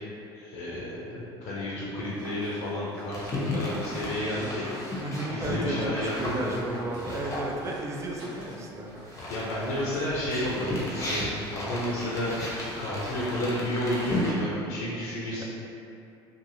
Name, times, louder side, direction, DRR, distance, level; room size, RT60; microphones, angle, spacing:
voice 1, 0.3-6.5 7.1-7.2 9.3-10.7 11.0-15.4, left 1 dB, 65° left, -6 dB, 0.6 m, -31 dB
sound 1, 2.0-10.4, right 1 dB, 70° right, 0.9 m, -48 dB
sound 2, 3.1-8.5 8.9-14.3, left 1 dB, 20° left, 0.7 m, -35 dB
voice 2, 5.0-9.3 15.4-15.5, right 2 dB, 20° right, -1 dB, 0.4 m, -34 dB
2.8 x 2.5 x 2.5 m, 2.7 s
hypercardioid pair, 70°, 14 cm